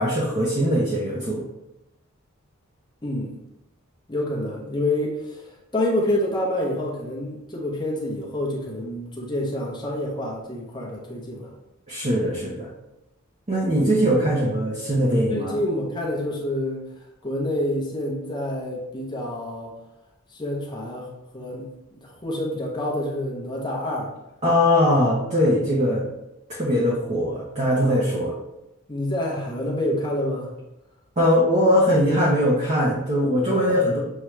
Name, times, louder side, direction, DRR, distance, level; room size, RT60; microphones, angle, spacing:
voice 1, 0.0-1.4 11.9-12.7 13.5-15.6 24.4-26.1 26.5-28.4 31.2-34.0, equal, 30° right, -4 dB, 0.6 m, -21 dB
voice 2, 3.0-3.4 4.1-11.5 15.3-19.7 20.3-21.1 21.3-24.1 27.7-28.0 28.9-30.5 33.5-33.7, left 1 dB, 20° left, -3 dB, 0.8 m, -28 dB
6.4 x 2.3 x 3.1 m, 0.92 s
head